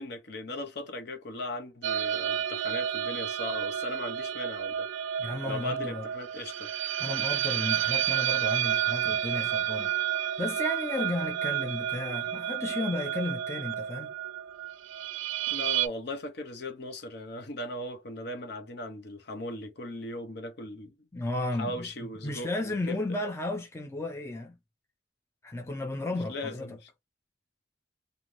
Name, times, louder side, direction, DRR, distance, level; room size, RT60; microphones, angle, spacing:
voice 1, 0.0-4.9 5.5-6.7 15.5-21.0 21.6-23.2 26.3-26.9, left 1 dB, 60° left, 0.8 m, -38 dB
sound 1, 1.8-15.9, right 11 dB, 85° right, 0.3 m, -30 dB
voice 2, 5.2-6.1 7.0-10.0 10.4-14.1 21.1-21.9 22.2-24.6 25.4-26.7, left 2 dB, 15° left, 0.4 m, -33 dB
3.2 x 2.5 x 2.6 m
head